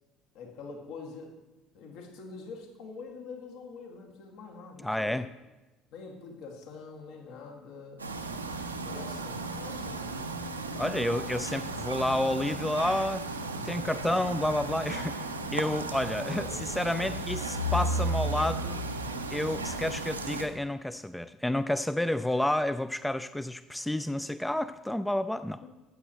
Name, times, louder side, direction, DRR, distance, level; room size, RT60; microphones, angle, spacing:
voice 1, 0.3-1.4 1.7-5.2 5.9-8.1 8.8-11.5 16.0-16.7 17.0-17.1 25.6-25.7, left 4 dB, 65° left, 0 dB, 1.9 m, -45 dB
voice 2, 4.8-5.2 10.8-13.2 13.6-15.2 15.5-18.8 19.3-25.6, left 1 dB, 5° left, 13 dB, 0.3 m, -30 dB
sound 1, 8.0-20.5, right 1 dB, 90° right, 0.6 m, -34 dB
13.5 x 8.8 x 3.0 m, 1.1 s
figure-of-eight pair, 60°, 0 cm